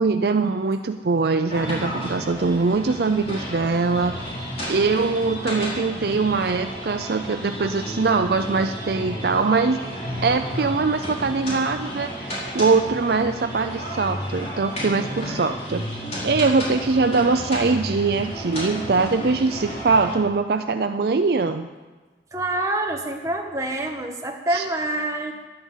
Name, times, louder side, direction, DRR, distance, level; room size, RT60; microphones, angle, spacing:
voice 1, 0.0-4.2 4.7-9.8 10.2-21.7 24.5-24.7, right 4 dB, 60° right, 7 dB, 0.5 m, -22 dB
sound 1, 1.5-20.2, equal, 35° left, 4.6 m, -32 dB
voice 2, 22.3-25.3, right 1 dB, 20° right, 2 dB, 1.4 m, -26 dB
12.0 x 11.0 x 7.3 m, 1.3 s
head